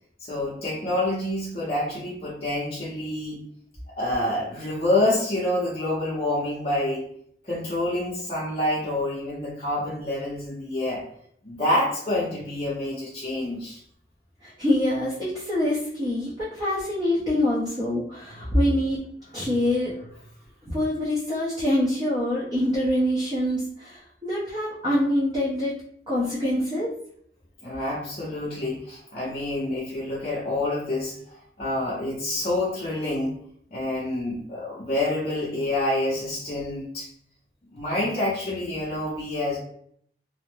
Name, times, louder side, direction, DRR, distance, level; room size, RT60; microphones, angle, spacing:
voice 1, 0.2-3.4 3.9-7.0 7.4-11.0 11.4-13.8 18.3-18.6 27.6-33.4 33.7-37.1 37.7-39.6, left 1 dB, 35° left, -9 dB, 0.6 m, -27 dB
voice 2, 14.4-19.0 19.3-19.9 20.7-25.7 26.1-26.9, left 1 dB, 20° right, -10 dB, 0.6 m, -25 dB
2.5 x 2.1 x 3.1 m, 0.65 s
head